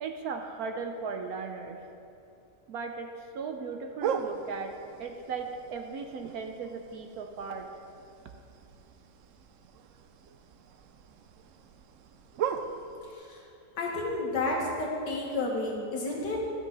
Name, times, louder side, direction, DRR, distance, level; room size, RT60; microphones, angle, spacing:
voice 1, 0.0-1.8 2.7-7.7, right 5 dB, 65° right, 5 dB, 1.0 m, -37 dB
sound 1, 4.0-13.1, right 7 dB, 85° right, 0.6 m, -39 dB
voice 2, 13.1-13.4 13.8-16.4, left 2 dB, 75° left, -2 dB, 2.1 m, -31 dB
12.5 x 8.5 x 4.0 m, 2.7 s
omnidirectional pair, 1.9 m